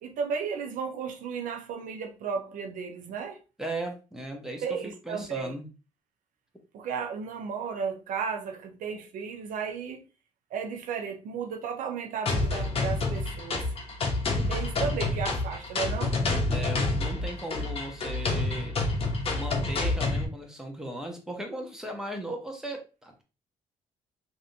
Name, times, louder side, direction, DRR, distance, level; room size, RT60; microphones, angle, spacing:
voice 1, 0.0-3.4 4.6-5.6 6.7-10.0 10.5-13.7 14.5-16.2, right 6 dB, 75° right, 0.6 m, -34 dB
voice 2, 3.6-5.6 16.5-18.8 19.3-23.2, right 1 dB, 5° right, 1.0 m, -37 dB
sound 1, 12.3-20.3, left 2 dB, 45° left, 0.9 m, -28 dB
3.3 x 2.7 x 2.7 m
cardioid pair, 80°, 14 cm